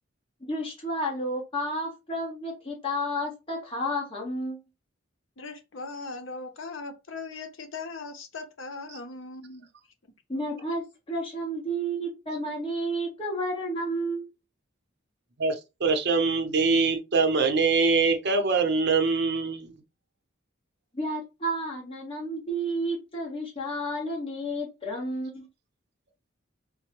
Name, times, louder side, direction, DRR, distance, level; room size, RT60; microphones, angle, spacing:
voice 1, 0.5-4.6 10.3-14.3 20.9-25.5, right 1 dB, 25° left, 1.2 m, -31 dB
voice 2, 5.4-9.7, left 3 dB, 75° left, 0.7 m, -39 dB
voice 3, 15.4-19.8, right 4 dB, 55° right, 0.7 m, -24 dB
4.3 x 2.1 x 3.0 m
head